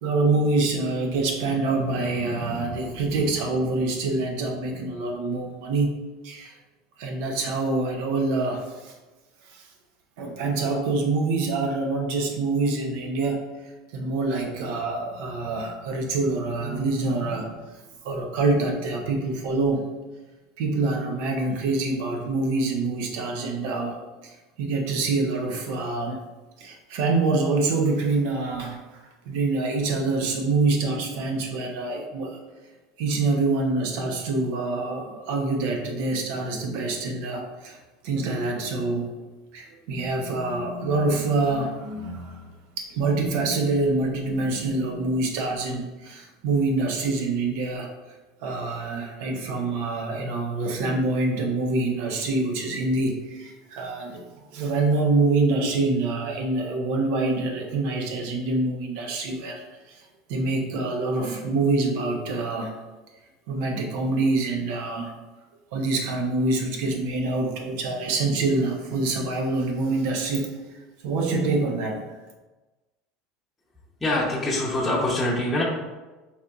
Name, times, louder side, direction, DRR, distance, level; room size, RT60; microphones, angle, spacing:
voice 1, 0.0-6.0 6.2-6.5 7.0-8.9 9.4-9.6 10.2-13.5 13.9-17.6 18.0-19.9 20.6-24.0 24.2-26.2 26.6-28.8 29.3-32.4 33.0-37.8 38.0-39.1 39.5-42.4 42.8-47.9 48.4-60.0 60.3-62.8 63.5-65.1 65.7-70.6 71.0-72.1, right 3 dB, 70° right, 1 dB, 0.7 m, -26 dB
voice 2, 74.0-75.6, left 1 dB, 10° left, -7 dB, 0.8 m, -24 dB
4.1 x 2.6 x 2.3 m, 1.2 s
supercardioid pair, 100°, 0 cm